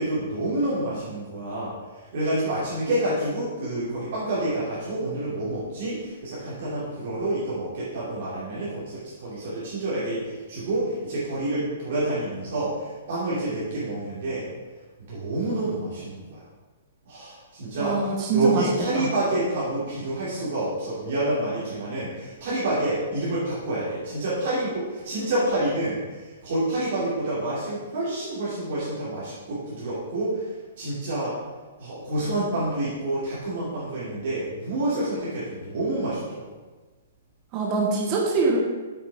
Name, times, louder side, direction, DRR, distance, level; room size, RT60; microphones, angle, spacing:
voice 1, 0.0-14.5 15.0-16.4 17.1-30.5 30.8-31.4 31.8-36.5, right 1 dB, 40° right, -9 dB, 3.0 m, -28 dB
voice 2, 17.8-18.7 18.9-19.1 37.5-38.6, right 4 dB, 20° right, -2 dB, 1.0 m, -24 dB
8.0 x 7.2 x 5.0 m, 1.3 s
hypercardioid pair, 180°, 0 cm